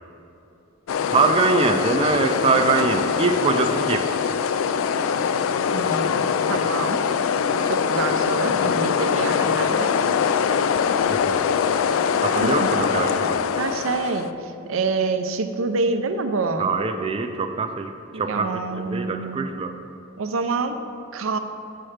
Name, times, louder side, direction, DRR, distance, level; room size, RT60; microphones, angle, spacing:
sound 1, 0.9-14.3, left 6 dB, 80° left, 0.3 m, -23 dB
voice 1, 1.1-4.1 11.1-11.4 12.2-13.4 16.6-18.5 18.7-19.7, right 4 dB, 30° right, 5 dB, 0.4 m, -23 dB
voice 2, 5.7-6.2 6.5-7.1 7.6-9.9 12.4-12.7 13.6-16.7 18.1-19.6 20.2-20.8 21.1-21.4, right 3 dB, 90° right, 7 dB, 0.5 m, -27 dB
7.7 x 4.4 x 6.4 m, 2.8 s
head